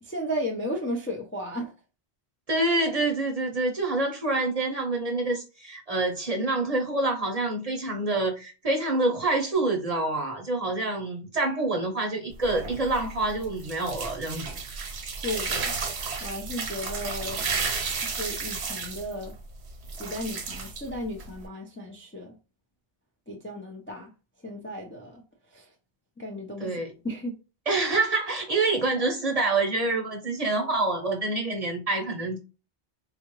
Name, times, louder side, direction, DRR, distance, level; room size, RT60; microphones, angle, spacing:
voice 1, 0.0-1.7 15.2-15.7 16.2-17.5 18.1-19.4 20.0-22.4 23.3-24.1 24.4-25.2 25.5-25.7 26.2-26.8 27.0-27.4, equal, 15° left, 0.5 m, -34 dB
voice 2, 2.5-14.6 26.6-26.9 27.7-32.4, right 2 dB, 40° right, 0.8 m, -27 dB
sound 1, 12.3-21.5, right 4 dB, 75° right, 1.0 m, -33 dB
3.7 x 2.4 x 3.0 m
omnidirectional pair, 1.1 m